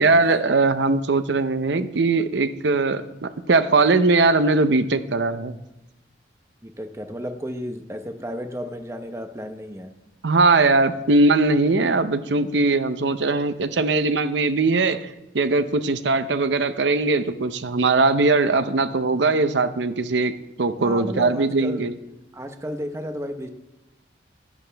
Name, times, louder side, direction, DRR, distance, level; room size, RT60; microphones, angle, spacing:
voice 1, 0.0-5.6 10.2-15.1 15.3-20.3 20.6-21.9, right 3 dB, 75° right, 11 dB, 0.7 m, -20 dB
voice 2, 6.6-9.9 20.8-21.9 22.3-23.5, equal, 15° right, 6 dB, 0.8 m, -33 dB
11.0 x 10.5 x 3.4 m, 0.96 s
head